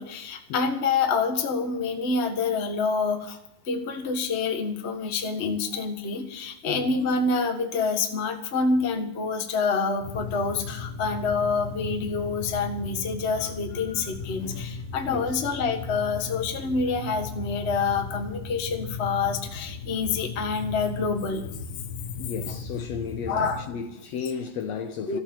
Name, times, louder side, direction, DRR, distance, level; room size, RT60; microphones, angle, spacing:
voice 1, 0.0-3.4 3.7-21.5 23.3-23.6 25.1-25.2, left 4 dB, 30° left, 1.3 m, -27 dB
sound 1, 10.0-23.7, left 5 dB, 90° left, 3.2 m, -37 dB
voice 2, 14.4-14.7 15.1-15.3 22.2-25.2, left 6 dB, 70° left, 1.8 m, -34 dB
14.5 x 8.5 x 8.9 m
omnidirectional pair, 3.6 m